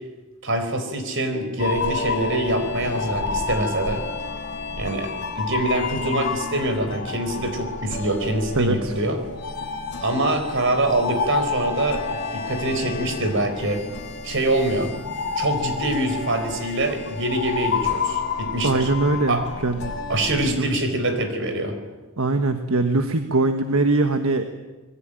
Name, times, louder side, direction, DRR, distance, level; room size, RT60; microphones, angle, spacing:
voice 1, 0.4-4.0 4.8-9.2 10.0-13.8 14.2-14.9 15.4-18.9 19.3-19.4 20.1-21.8, right 1 dB, 55° right, 8 dB, 4.4 m, -24 dB
sound 1, 1.6-20.5, left 4 dB, 50° left, 3.3 m, -30 dB
voice 2, 8.5-8.9 18.6-19.9 20.4-20.7 22.2-24.5, right 2 dB, 70° right, 7 dB, 1.4 m, -22 dB
26.5 x 21.0 x 9.1 m, 1.2 s
head